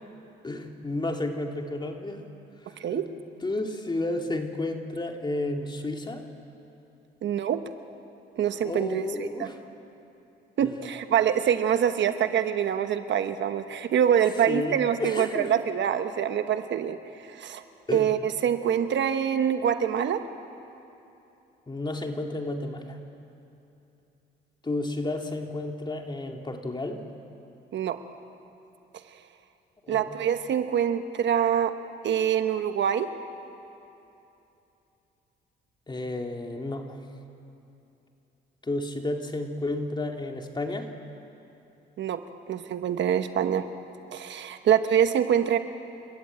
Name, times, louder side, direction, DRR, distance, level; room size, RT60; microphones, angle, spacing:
voice 1, 0.4-2.2 2.6-3.1 3.4-6.3 8.6-9.6 10.6-10.7 14.5-15.6 17.9-18.1 21.7-23.0 24.6-27.0 29.8-30.1 35.9-37.0 38.6-40.9, left 2 dB, 20° left, 3 dB, 2.3 m, -32 dB
voice 2, 7.2-7.6 8.4-9.5 10.6-17.0 17.3-17.6 17.9-20.2 27.7-28.0 29.9-31.7 32.0-33.1 42.0-42.2 42.5-43.7 44.1-45.6, right 9 dB, 65° right, 9 dB, 1.2 m, -25 dB
29.5 x 14.0 x 8.7 m, 2.8 s
cardioid pair, 90°, 20 cm